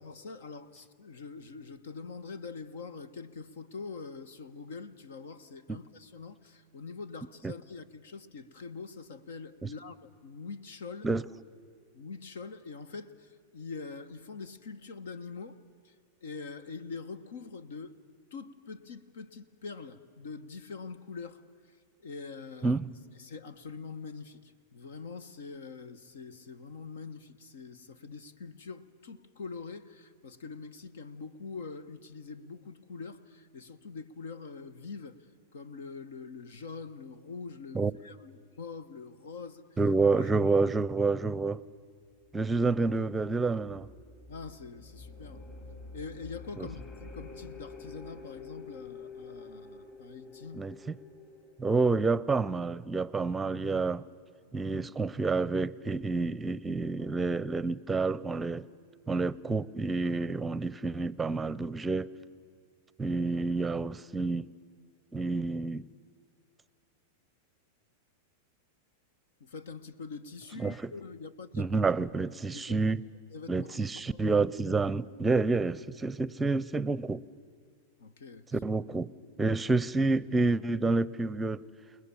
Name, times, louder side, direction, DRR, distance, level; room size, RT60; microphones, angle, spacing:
voice 1, 0.0-11.1 11.9-17.9 18.3-22.8 23.2-35.3 35.5-39.7 40.0-40.4 44.3-45.4 45.9-50.6 69.4-71.8 72.5-72.9 73.3-74.2 78.0-78.5, left 4 dB, 80° left, 1.4 m, -44 dB
voice 2, 39.8-41.6 42.3-43.9 46.6-46.7 50.5-51.0 51.6-54.0 54.5-58.7 59.1-62.1 63.0-64.5 65.1-65.9 70.6-70.7 71.6-73.0 73.5-77.2 78.5-79.1 79.4-81.6, right 3 dB, 15° right, 0.7 m, -28 dB
sound 1, 42.3-52.6, left 4 dB, 35° left, 6.4 m, -48 dB
30.0 x 20.0 x 7.1 m
hypercardioid pair, 115°, 0 cm